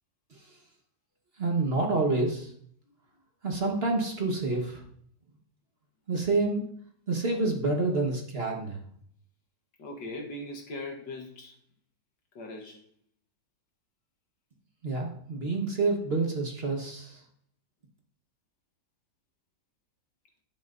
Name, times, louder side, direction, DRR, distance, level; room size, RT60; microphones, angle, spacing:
voice 1, 1.4-2.5 3.4-4.8 6.1-6.6 7.1-8.8 14.8-17.2, right 3 dB, 35° right, 1 dB, 1.4 m, -28 dB
voice 2, 9.8-11.6 12.4-12.8, left 2 dB, 80° left, 1 dB, 2.0 m, -39 dB
11.5 x 8.8 x 2.6 m, 0.63 s
omnidirectional pair, 1.9 m